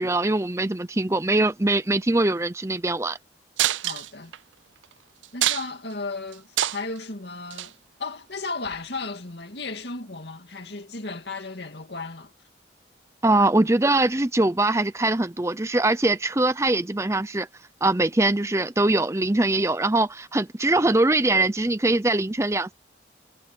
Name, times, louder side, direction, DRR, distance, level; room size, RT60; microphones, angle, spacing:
voice 1, 0.0-3.2 13.2-17.5 17.8-22.7, right 2 dB, 15° right, 0.6 m, -22 dB
sound 1, 3.6-4.4 4.8-4.9 5.2-5.9 6.3-7.0 7.5-7.7 8.6-8.8, right 13 dB, 85° right, 0.5 m, -25 dB
voice 2, 3.8-4.3 5.3-12.3, left 3 dB, 65° left, 2.4 m, -35 dB
head